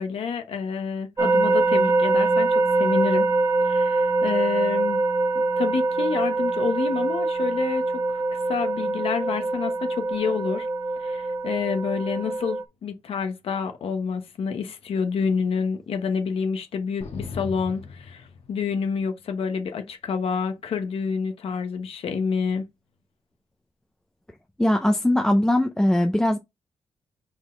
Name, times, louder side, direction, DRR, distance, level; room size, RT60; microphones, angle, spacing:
voice 1, 0.0-3.3 3.6-5.0 5.3-8.2 8.5-10.7 11.0-22.6, left 6 dB, 70° left, 1.1 m, -28 dB
sound 1, 1.2-12.6, right 3 dB, 30° right, 1.2 m, -23 dB
sound 2, 17.0-18.9, left 4 dB, 90° left, 1.7 m, -38 dB
voice 2, 24.6-26.4, left 1 dB, 5° left, 0.6 m, -20 dB
5.1 x 4.0 x 5.2 m
wide cardioid pair, 145°, 10 cm